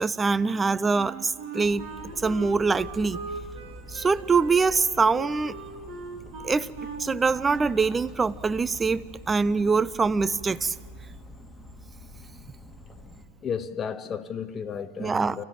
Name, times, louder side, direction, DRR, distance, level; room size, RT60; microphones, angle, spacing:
voice 1, 0.0-1.9 2.2-3.2 3.9-5.5 6.4-6.7 7.0-10.7 15.0-15.4, right 4 dB, 15° right, 0.5 m, -24 dB
Wind instrument woodwind instrument, 1.0-7.8, right 4 dB, 40° right, 2.6 m, -39 dB
sound 1, 1.6-13.2, left 1 dB, ahead, 2.1 m, -45 dB
voice 2, 13.4-15.4, left 7 dB, 25° left, 0.7 m, -33 dB
24.0 x 16.0 x 9.1 m
figure-of-eight pair, 90°, 0 cm